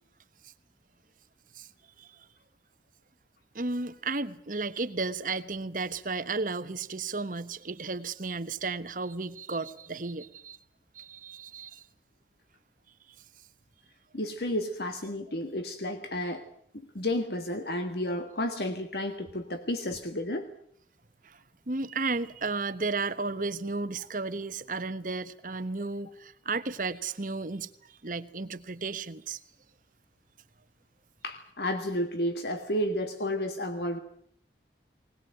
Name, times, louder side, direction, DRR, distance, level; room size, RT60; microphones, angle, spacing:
voice 1, 3.5-10.6 10.9-11.8 21.2-21.4 21.7-27.7 28.0-29.4, right 3 dB, 50° right, 11 dB, 1.2 m, -33 dB
voice 2, 14.1-16.4 16.9-20.5 31.2-34.0, left 1 dB, 65° left, 7 dB, 1.7 m, -31 dB
20.5 x 20.0 x 9.0 m, 0.64 s
head